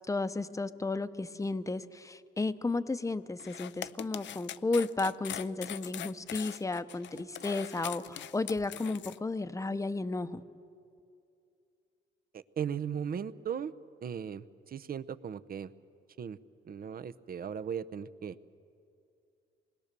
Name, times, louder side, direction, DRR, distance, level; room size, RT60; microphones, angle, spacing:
voice 1, 0.1-10.4, left 3 dB, 15° left, 13 dB, 0.8 m, -33 dB
sound 1, 3.4-9.2, left 11 dB, 65° left, 0.6 m, -42 dB
voice 2, 12.3-13.7 14.0-15.7 16.2-16.4 16.6-18.4, right 7 dB, 50° right, 13 dB, 0.8 m, -37 dB
27.0 x 21.0 x 6.8 m, 2.5 s
cardioid pair, 90°, 20 cm